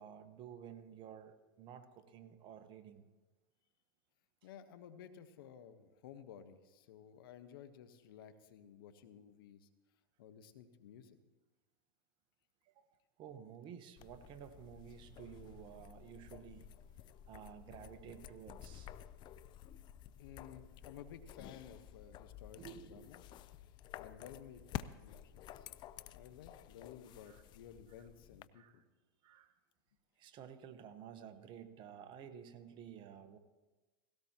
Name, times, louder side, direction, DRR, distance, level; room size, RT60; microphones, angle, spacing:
voice 1, 0.0-3.0 12.7-12.9 13.2-16.7 17.3-18.9 22.6-23.1 27.3-27.4 28.5-28.8 29.2-29.5 30.2-33.4, right 9 dB, 40° right, 10 dB, 1.2 m, -52 dB
voice 2, 4.4-9.7 10.2-11.2 20.2-23.2 23.6-25.7 26.1-28.8, left 8 dB, 70° left, 10 dB, 1.2 m, -55 dB
sound 1, 14.0-28.5, left 11 dB, 40° left, 0.5 m, -52 dB
17.5 x 17.0 x 2.9 m, 1.2 s
hypercardioid pair, 105°, 12 cm